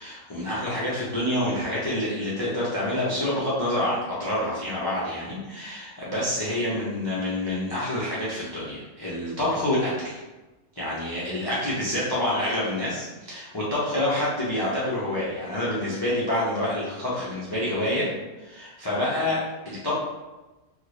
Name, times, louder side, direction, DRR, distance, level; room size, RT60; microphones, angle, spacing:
voice 1, 0.0-10.2 10.8-18.1 18.4-19.4 19.6-19.9, left 1 dB, 40° left, -8 dB, 0.3 m, -27 dB
3.3 x 2.4 x 3.1 m, 1.1 s
omnidirectional pair, 1.6 m